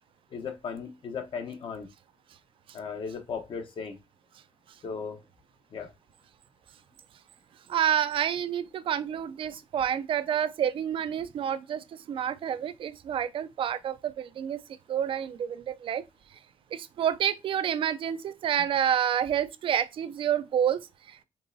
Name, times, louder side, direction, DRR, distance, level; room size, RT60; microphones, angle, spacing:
voice 1, 0.3-1.9 2.7-4.0 4.8-5.2 5.7-5.9, left 5 dB, 60° left, 0.9 m, -36 dB
voice 2, 7.7-14.6 14.9-16.0 16.7-21.2, right 9 dB, 60° right, 0.4 m, -29 dB
5.4 x 2.9 x 2.6 m
cardioid pair, 105°, 10 cm